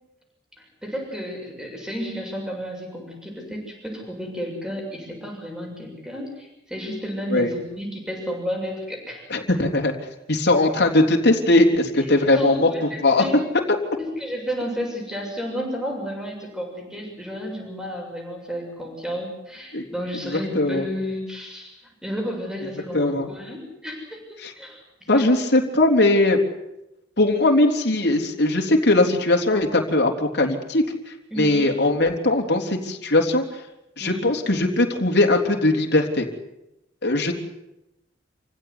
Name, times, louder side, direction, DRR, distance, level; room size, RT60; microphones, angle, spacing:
voice 1, 0.6-9.2 12.0-13.3 14.0-21.8 22.0-24.8 25.1-25.3 31.3-31.8 34.0-34.3, equal, 5° right, 0 dB, 7.1 m, -32 dB
voice 2, 9.3-10.0 10.3-12.7 13.0-13.2 19.7-19.8 20.2-20.8 22.9-23.3 24.4-24.5 25.1-26.4 27.2-30.8 31.4-33.4 34.0-36.3 37.0-37.3, left 2 dB, 60° left, 2 dB, 3.7 m, -19 dB
28.0 x 16.5 x 9.8 m, 0.92 s
head